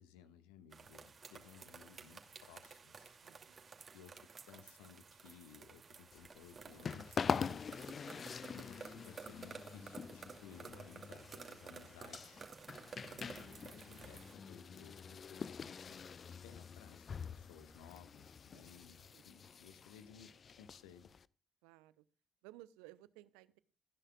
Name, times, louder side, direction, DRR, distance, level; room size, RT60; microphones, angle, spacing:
voice 1, 0.0-3.2 3.9-7.3 8.5-12.4 13.0-16.1 16.4-21.1, left 8 dB, 70° left, 11 dB, 1.5 m, -59 dB
sound 1, 0.7-14.3, right 5 dB, 40° right, 2.5 m, -54 dB
voice 2, 3.2-3.7 14.9-15.2 18.5-18.6 19.1-19.2 21.6-22.0 22.4-23.6, right 17 dB, 70° right, 18 dB, 0.7 m, -59 dB
sound 2, 6.1-21.3, left 6 dB, 40° left, 0.5 m, -45 dB
28.5 x 9.9 x 2.3 m, 0.32 s
figure-of-eight pair, 45°, 0 cm